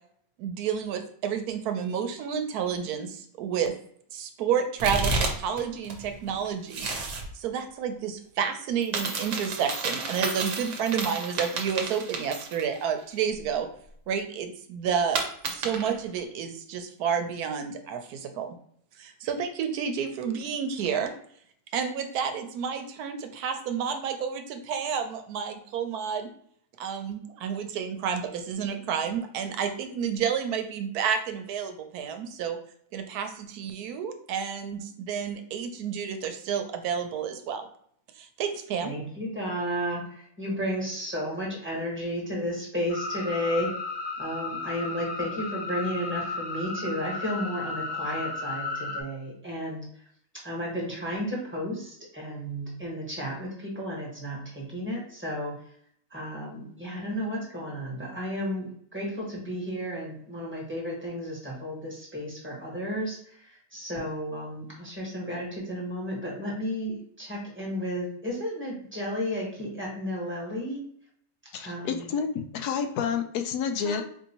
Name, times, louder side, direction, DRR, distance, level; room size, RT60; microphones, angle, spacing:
voice 1, 0.4-3.7 4.1-6.9 7.3-13.7 14.1-15.2 15.5-18.6 19.0-21.1 21.7-26.3 26.8-32.6 32.9-37.7 38.2-39.0, right 7 dB, 80° right, 7 dB, 1.1 m, -30 dB
sound 1, 4.8-5.6 5.8-7.3 8.8-12.8 13.2-13.3 15.1-16.0, right 3 dB, 60° right, 1.0 m, -31 dB
voice 2, 38.8-43.7 44.2-49.8 50.4-55.6 56.1-63.2 63.5-70.8 71.6-72.1 73.8-74.0, equal, 10° right, -4 dB, 1.2 m, -33 dB
sound 2, 42.9-49.0, left 3 dB, 45° left, 0.7 m, -34 dB
voice 3, 71.5-74.0, left 6 dB, 85° left, 7 dB, 1.1 m, -29 dB
4.5 x 2.7 x 2.9 m, 0.63 s
omnidirectional pair, 1.6 m